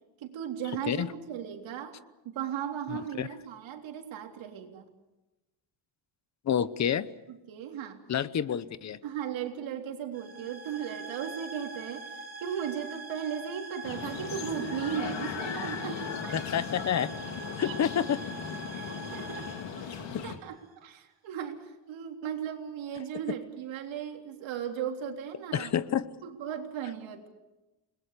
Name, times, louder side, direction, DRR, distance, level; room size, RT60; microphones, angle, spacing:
voice 1, 0.2-2.0 2.3-4.9 7.3-8.0 9.0-12.1 12.4-16.4 17.6-17.7 18.7-19.5 19.8-25.7 26.2-27.3, right 8 dB, 80° right, 3 dB, 3.6 m, -37 dB
voice 2, 2.9-3.3 6.4-7.1 8.1-9.0 16.3-17.1 17.6-18.2 20.1-20.2 25.5-26.1, left 9 dB, 35° left, 16 dB, 0.9 m, -28 dB
sound 1, 10.1-20.7, right 3 dB, 20° right, 4.4 m, -43 dB
sound 2, 13.8-20.4, left 7 dB, 70° left, 2.6 m, -38 dB
29.5 x 21.0 x 6.8 m, 1.1 s
cardioid pair, 165°, 45 cm